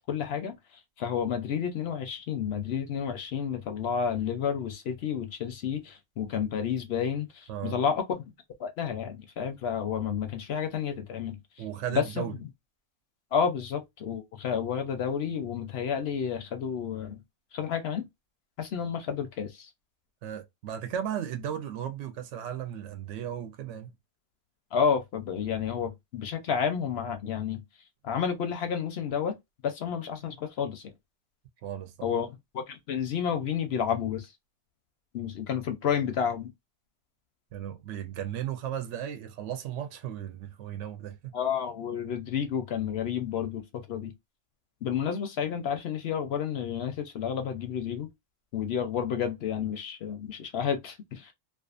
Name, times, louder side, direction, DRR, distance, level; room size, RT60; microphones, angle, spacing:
voice 1, 0.1-8.2 8.6-11.4 11.9-12.3 13.3-17.2 17.5-18.0 18.6-19.7 24.7-27.6 28.0-29.3 29.6-30.9 32.0-34.3 35.1-36.5 41.3-44.1 44.8-48.1 48.5-51.3, left 7 dB, 65° left, 0.7 m, -30 dB
voice 2, 11.6-12.3 20.2-23.9 31.6-32.1 37.5-41.3, right 10 dB, 70° right, 0.9 m, -35 dB
2.4 x 2.3 x 2.4 m
omnidirectional pair, 1.3 m